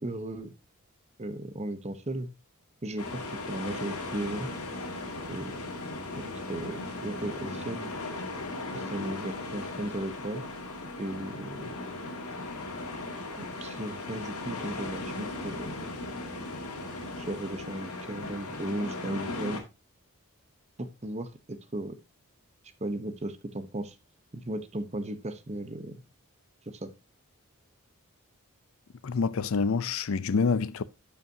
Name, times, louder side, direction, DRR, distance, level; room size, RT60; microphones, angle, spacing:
voice 1, 0.0-0.5 1.2-2.3 2.8-4.5 5.3-5.5 6.2-6.3 6.5-7.9 8.7-10.4 11.0-11.7 13.4-15.9 17.1-19.6 20.8-22.0 22.8-24.0 24.3-26.0 26.7-26.9, right 1 dB, 30° right, 0.8 m, -36 dB
sound 1, 3.0-19.6, left 2 dB, 80° left, 2.0 m, -37 dB
voice 2, 29.0-30.8, left 5 dB, 65° left, 0.5 m, -27 dB
12.0 x 5.4 x 2.7 m
head